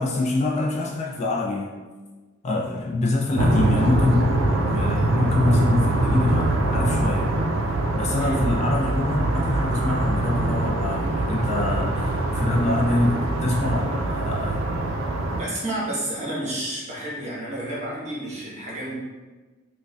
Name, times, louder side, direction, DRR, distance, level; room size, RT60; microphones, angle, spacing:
voice 1, 0.0-1.8 2.4-7.3 7.9-14.6, left 2 dB, 35° left, -1 dB, 0.3 m, -25 dB
sound 1, 3.4-15.4, right 2 dB, 75° right, 0.4 m, -23 dB
voice 2, 15.3-18.9, right 1 dB, 35° right, -7 dB, 1.1 m, -31 dB
4.8 x 2.2 x 2.4 m, 1.3 s
head